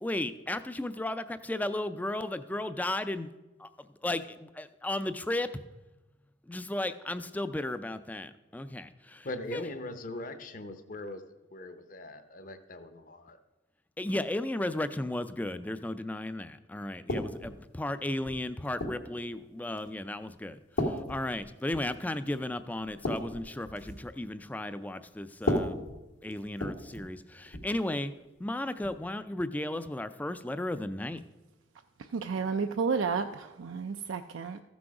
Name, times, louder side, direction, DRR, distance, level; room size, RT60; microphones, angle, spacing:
voice 1, 0.0-3.3 3.6-5.5 6.5-9.6 14.0-25.8 26.2-28.1 28.4-31.2, left 1 dB, 10° left, 12 dB, 0.3 m, -34 dB
voice 2, 9.2-11.2 11.5-13.4, left 2 dB, 45° left, 9 dB, 0.8 m, -40 dB
sound 1, 17.1-17.6 18.2-19.1 19.8-20.0 20.8-21.9 22.3-22.4 22.8-24.1 25.3-27.1 27.5-27.7 28.8-29.0, left 1 dB, 85° left, 1.9 m, -34 dB
voice 3, 32.1-34.6, right 5 dB, 85° right, 7 dB, 0.4 m, -31 dB
14.5 x 6.2 x 4.8 m, 1.1 s
head